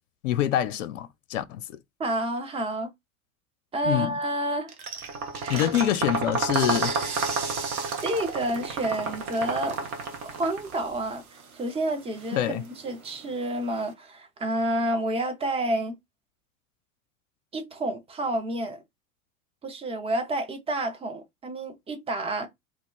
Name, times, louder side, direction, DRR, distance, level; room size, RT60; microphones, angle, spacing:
voice 1, 0.2-1.8 3.8-4.1 5.5-6.9 12.3-12.6, left 12 dB, 65° left, 0.5 m, -26 dB
voice 2, 2.0-2.9 3.7-4.7 5.4-5.7 8.0-9.8 10.2-11.2 11.5-15.9 17.5-18.8 19.6-22.5, right 1 dB, 15° right, 0.6 m, -29 dB
sound 1, 4.7-13.9, right 5 dB, 80° right, 0.8 m, -39 dB
sound 2, 5.0-10.7, right 4 dB, 35° right, 0.9 m, -30 dB
2.5 x 2.3 x 3.8 m
figure-of-eight pair, 80°, 42 cm